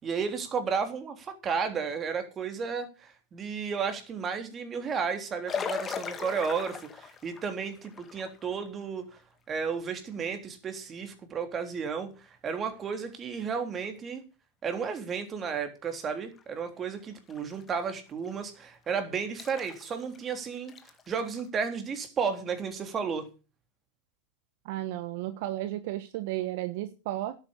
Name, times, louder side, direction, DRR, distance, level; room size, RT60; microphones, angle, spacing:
voice 1, 0.0-9.1 9.5-14.2 14.6-20.7 21.1-23.3, right 6 dB, 30° right, 3.5 m, -33 dB
sound 1, 5.5-8.7 9.2-9.3 12.8-12.9 13.8-13.9 15.9-16.0 16.4-16.5 17.1-17.8 18.2-18.4 19.4-20.2 20.6-21.4, left 6 dB, 25° left, 2.0 m, -39 dB
voice 2, 24.6-27.4, right 14 dB, 60° right, 1.2 m, -33 dB
11.5 x 9.0 x 7.2 m
hypercardioid pair, 110°, 0 cm